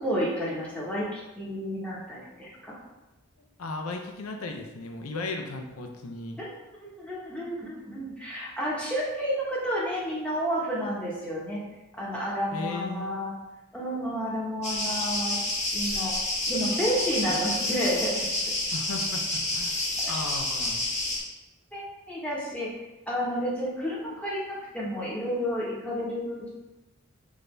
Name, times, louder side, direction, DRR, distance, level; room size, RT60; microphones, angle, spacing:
voice 1, 0.0-2.8 6.4-6.5 6.8-11.6 12.0-13.3 13.7-15.4 15.7-16.1 16.5-18.3 20.0-20.1 21.7-22.7 23.1-26.5, equal, 5° left, -6 dB, 1.0 m, -31 dB
voice 2, 3.6-6.4 12.5-13.2 17.2-17.4 18.7-19.8 20.1-20.8, left 3 dB, 80° left, 3 dB, 0.5 m, -36 dB
sound 1, 14.6-21.2, left 2 dB, 30° left, 1.1 m, -29 dB
6.1 x 2.6 x 3.2 m, 1.0 s
head